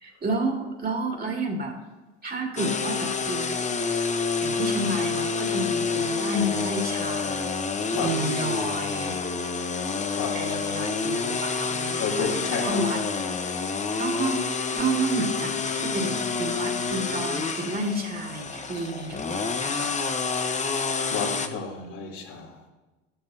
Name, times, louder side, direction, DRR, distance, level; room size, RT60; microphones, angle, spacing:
voice 1, 0.0-1.8 2.2-3.6 3.8-4.0 4.4-7.5 7.9-9.2 10.3-12.3 12.6-13.0 14.0-14.4 14.7-19.9, right 2 dB, 25° right, 1 dB, 2.3 m, -30 dB
sound 1, 2.6-21.5, left 4 dB, 20° left, 0.9 m, -28 dB
voice 2, 12.0-12.8 21.1-22.6, left 5 dB, 65° left, -3 dB, 3.0 m, -31 dB
13.0 x 12.5 x 2.7 m, 1.2 s
hypercardioid pair, 75°, 38 cm